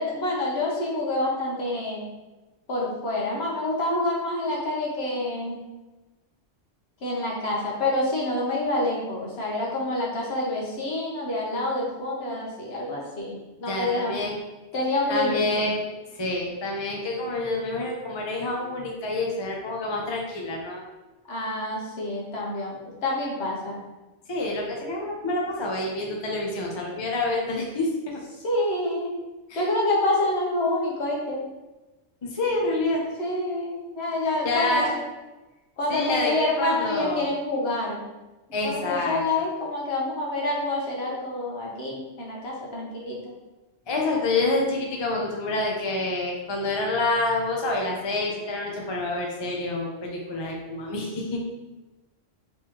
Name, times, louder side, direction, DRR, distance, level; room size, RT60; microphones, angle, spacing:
voice 1, 0.0-2.1 2.7-5.6 7.0-14.2 14.7-15.6 21.3-22.8 23.0-23.8 28.4-29.1 29.5-31.4 33.2-34.9 35.8-38.0 38.6-43.2, left 2 dB, 60° left, -3 dB, 1.1 m, -27 dB
voice 2, 13.7-14.4 15.1-15.8 16.2-20.9 24.3-28.2 29.5-29.7 32.2-33.0 34.4-34.9 35.9-37.3 38.5-39.5 43.9-51.4, left 2 dB, 40° left, -1 dB, 0.4 m, -27 dB
3.6 x 3.2 x 2.9 m, 1.1 s
omnidirectional pair, 1.3 m